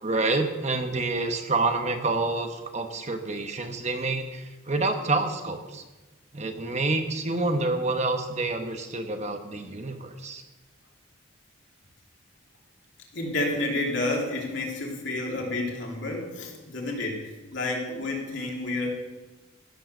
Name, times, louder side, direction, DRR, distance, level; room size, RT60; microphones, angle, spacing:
voice 1, 0.0-5.8 6.3-10.4, right 3 dB, 30° right, 6 dB, 1.0 m, -28 dB
voice 2, 13.1-18.9, left 2 dB, 60° left, -1 dB, 3.0 m, -30 dB
15.5 x 7.6 x 6.6 m, 1.2 s
head